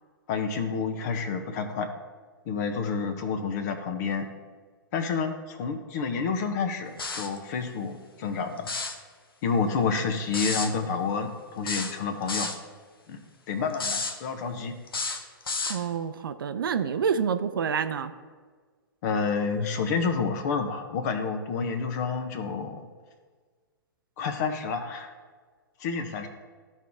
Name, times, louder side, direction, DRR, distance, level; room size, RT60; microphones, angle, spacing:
voice 1, 0.3-1.9 2.5-4.3 4.9-8.7 9.4-12.5 13.1-13.2 13.5-14.8 19.0-22.9 24.2-25.1 25.8-26.3, left 5 dB, 50° left, 7 dB, 1.1 m, -29 dB
sound 1, 7.0-7.4 8.6-9.0 10.3-10.7 11.7-12.6 13.7-14.2 14.9-15.8, left 4 dB, 80° left, 1.0 m, -31 dB
voice 2, 15.7-18.1, right 7 dB, 70° right, 11 dB, 0.6 m, -28 dB
13.5 x 4.5 x 3.7 m, 1.5 s
figure-of-eight pair, 115°, 12 cm